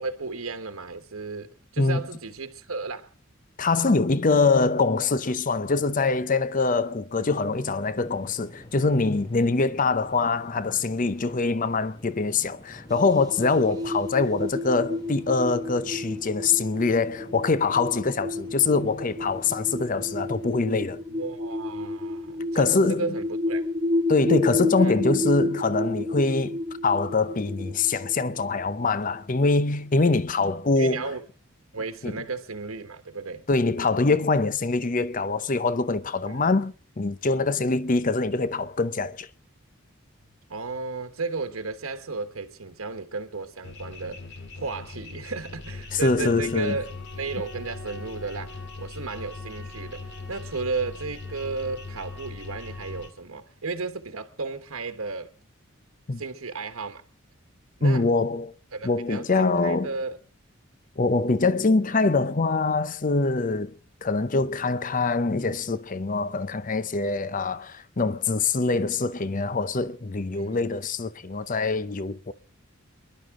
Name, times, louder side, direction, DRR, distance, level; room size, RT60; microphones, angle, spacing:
voice 1, 0.0-3.1 7.2-7.3 13.7-13.8 14.1-14.3 21.1-23.7 24.8-25.0 30.8-31.2 31.7-33.5 36.3-36.4 40.5-44.2 44.5-50.0 50.3-55.3 56.2-57.0 57.8-58.0 58.7-60.2 68.7-68.8 70.3-70.6, right 4 dB, 90° right, 1.3 m, -34 dB
voice 2, 3.6-21.0 22.5-23.0 24.1-31.0 32.0-32.1 33.5-39.3 45.9-46.8 56.1-56.2 57.8-58.5 58.8-59.9 61.0-72.3, left 3 dB, 40° left, 0.7 m, -24 dB
sound 1, 7.4-21.2, left 1 dB, 20° left, 1.6 m, -48 dB
sound 2, 12.9-29.2, left 2 dB, 20° right, 0.8 m, -31 dB
sound 3, 43.6-53.1, left 3 dB, 55° left, 2.1 m, -39 dB
28.0 x 11.5 x 3.7 m
head